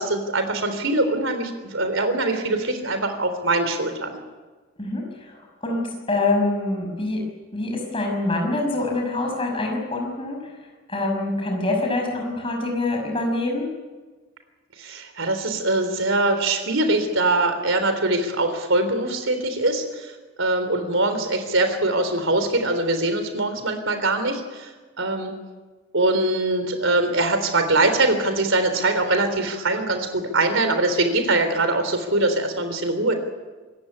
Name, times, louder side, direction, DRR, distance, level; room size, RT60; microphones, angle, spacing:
voice 1, 0.0-4.2 14.8-20.1 20.4-24.7 25.0-25.3 25.9-33.1, right 2 dB, 65° right, 8 dB, 3.6 m, -22 dB
voice 2, 4.8-7.2 7.5-10.4 10.9-13.7, left 2 dB, 25° left, 1 dB, 5.9 m, -25 dB
26.0 x 15.0 x 10.0 m, 1.3 s
head